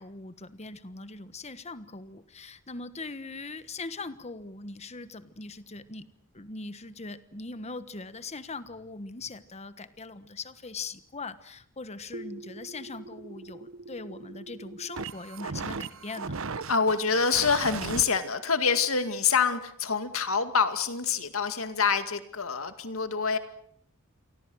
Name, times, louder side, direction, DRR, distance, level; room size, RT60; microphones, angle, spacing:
voice 1, 0.0-6.1 6.3-16.4, left 3 dB, 30° left, 13 dB, 1.3 m, -41 dB
sound 1, 12.1-18.0, right 4 dB, 65° right, 1.0 m, -38 dB
voice 2, 16.7-23.4, left 5 dB, 70° left, 9 dB, 2.2 m, -26 dB
29.5 x 24.0 x 6.4 m, 0.69 s
head